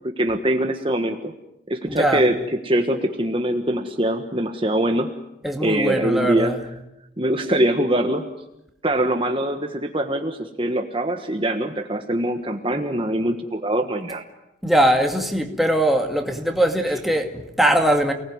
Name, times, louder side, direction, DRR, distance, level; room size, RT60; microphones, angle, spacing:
voice 1, 0.2-1.3 1.7-2.4 2.6-5.1 5.6-6.5 7.2-8.3 8.8-14.2, right 1 dB, 25° right, 1.5 m, -23 dB
voice 2, 1.9-2.3 5.4-6.6 14.6-18.1, right 1 dB, ahead, 2.3 m, -21 dB
29.0 x 19.5 x 9.6 m
head